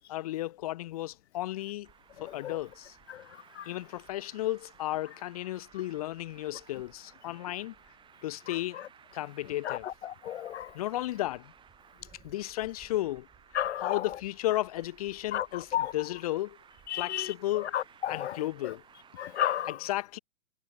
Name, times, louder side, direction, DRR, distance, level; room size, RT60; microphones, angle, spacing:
voice 1, 0.0-1.9 2.2-2.9 3.7-7.7 8.2-8.8 9.1-9.9 10.7-11.5 12.2-13.3 13.7-16.6 16.9-17.7 18.1-18.8 19.7-20.2, left 15 dB, 25° left, 0.9 m, -34 dB
Traffic noise roadway noise, 1.8-19.7, right 8 dB, 10° right, 5.0 m, -58 dB
voice 2, 10.3-10.7 13.6-14.0 15.3-15.4 15.7-15.9 16.9-17.3 17.7-18.3 19.2-19.7, left 11 dB, 50° left, 0.5 m, -31 dB
hypercardioid pair, 165°, 45 cm